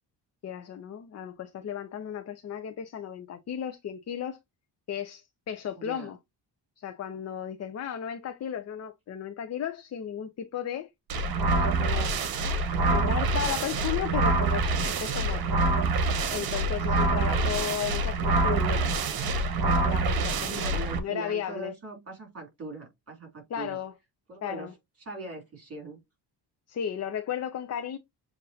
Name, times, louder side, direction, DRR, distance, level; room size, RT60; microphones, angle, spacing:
voice 1, 0.4-4.4 4.9-6.2 6.8-10.9 11.6-12.1 12.9-15.4 16.3-18.2 18.4-18.8 19.6-21.7 23.5-23.9 24.4-24.7 26.7-28.0, left 9 dB, 40° left, 0.5 m, -34 dB
voice 2, 5.7-6.1 12.6-13.1 17.2-17.6 20.3-23.8 24.3-24.7 25.0-26.0, right 2 dB, 35° right, 2.9 m, -41 dB
sound 1, 11.1-21.0, right 3 dB, 55° right, 1.0 m, -26 dB
7.5 x 2.6 x 2.6 m
cardioid pair, 135°, 43 cm